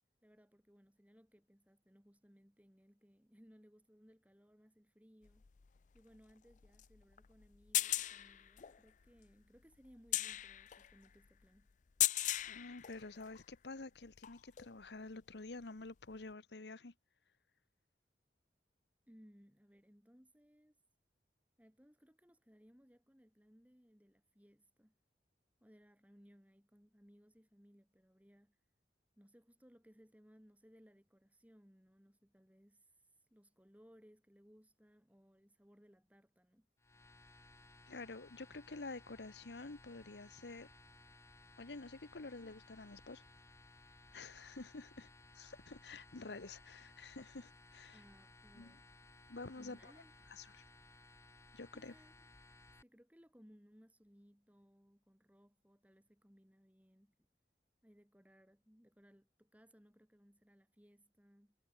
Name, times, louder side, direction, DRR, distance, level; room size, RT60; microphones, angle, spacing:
voice 1, 0.2-5.4 5.9-11.7 19.1-20.8 21.6-24.9 25.6-28.6 29.2-36.7 45.0-45.1 47.9-49.3 49.5-50.4 51.7-52.3 52.8-57.3 57.8-61.6, equal, 10° right, 4.4 m, -65 dB
sound 1, 5.2-13.5 14.0-14.8 16.1-16.2, left 14 dB, 45° left, 0.4 m, -39 dB
voice 2, 12.5-16.9 37.9-40.7 41.6-43.2 44.1-45.1 45.3-48.0 48.5-48.8 49.3-49.9 50.3-50.6 51.5-51.9, left 3 dB, 75° left, 1.1 m, -49 dB
sound 2, 36.8-52.8, left 2 dB, 15° left, 0.8 m, -61 dB
head